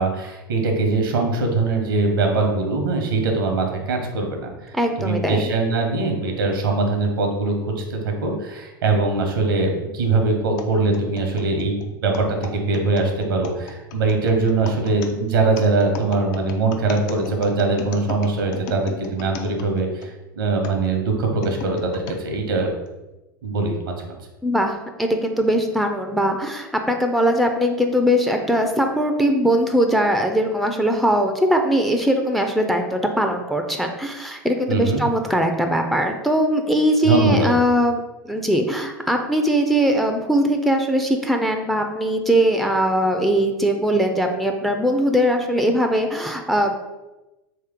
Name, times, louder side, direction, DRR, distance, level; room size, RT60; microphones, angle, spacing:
voice 1, 0.0-22.7 23.4-24.2 34.7-35.0 37.1-37.5, right 3 dB, 80° right, 3 dB, 0.8 m, -22 dB
voice 2, 4.7-5.5 24.4-46.8, equal, ahead, 4 dB, 0.4 m, -20 dB
sound 1, 10.6-20.1 20.6-22.2 22.9-23.0 23.8-24.1, left 5 dB, 60° left, 0.5 m, -37 dB
3.2 x 2.9 x 3.6 m, 1.0 s
hypercardioid pair, 95°, 11 cm